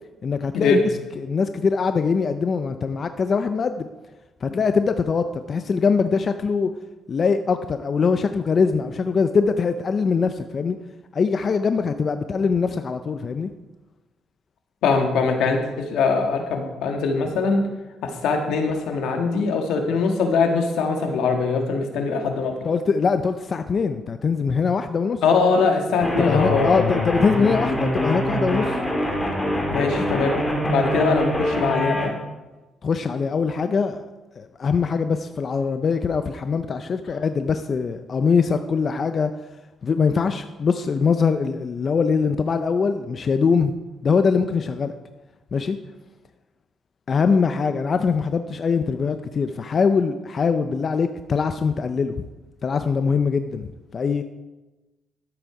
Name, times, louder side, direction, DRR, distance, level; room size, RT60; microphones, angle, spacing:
voice 1, 0.2-0.8 1.2-3.8 4.4-6.7 7.1-10.8 11.1-13.5 22.7-25.2 26.2-28.8 29.7-30.0 32.8-34.0 34.4-39.3 39.8-43.7 44.0-44.9 45.5-45.8 47.1-52.3 52.6-54.2, left 5 dB, 45° left, 9 dB, 0.6 m, -22 dB
voice 2, 14.8-17.7 18.0-22.6 25.2-26.8 29.7-30.4 30.6-32.1, left 4 dB, 85° left, 4 dB, 1.6 m, -22 dB
sound 1, 26.0-32.1, equal, 20° left, 2.5 m, -24 dB
12.5 x 8.0 x 4.8 m, 1.1 s
cardioid pair, 90°, 0 cm